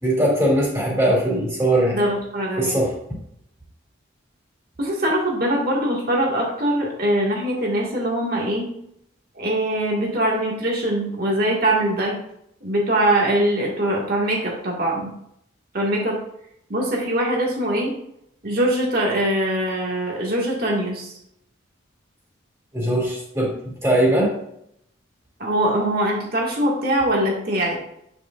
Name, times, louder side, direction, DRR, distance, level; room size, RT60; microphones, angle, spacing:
voice 1, 0.0-2.0 2.6-2.9 22.7-24.3, right 1 dB, 15° right, -4 dB, 2.8 m, -20 dB
voice 2, 1.9-2.8 4.8-8.7 9.4-12.2 12.6-15.1 15.7-16.2 16.7-17.9 18.4-21.1 25.4-27.8, right 1 dB, 50° right, -2 dB, 2.0 m, -22 dB
9.1 x 6.9 x 2.6 m, 0.74 s
head